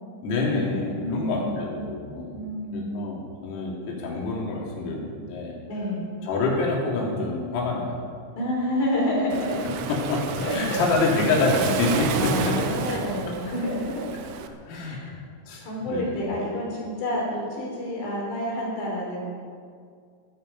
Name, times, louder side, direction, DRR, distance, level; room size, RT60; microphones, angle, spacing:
voice 1, 0.2-2.4 2.7-5.6 6.2-8.0 9.9-12.6 12.9-13.0 14.7-15.1 15.5-16.2, left 3 dB, 85° left, -3 dB, 5.7 m, -27 dB
voice 2, 1.0-1.6 2.3-3.1 5.7-6.1 8.3-9.7 10.4-10.8 12.1-14.0 14.8-15.0 15.6-19.3, left 1 dB, 60° left, -2 dB, 5.3 m, -29 dB
Waves surf, 9.3-14.5, right 7 dB, 85° right, 3.6 m, -31 dB
16.0 x 15.0 x 5.5 m, 2.2 s
omnidirectional pair, 6.0 m